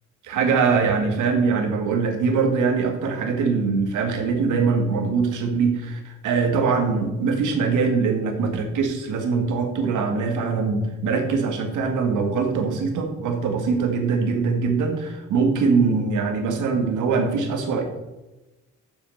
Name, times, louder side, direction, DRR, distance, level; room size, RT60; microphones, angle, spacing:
voice 1, 0.2-17.8, right 5 dB, 80° right, 3 dB, 2.2 m, -22 dB
7.6 x 7.0 x 6.8 m, 1.1 s
cardioid pair, 90°, 30 cm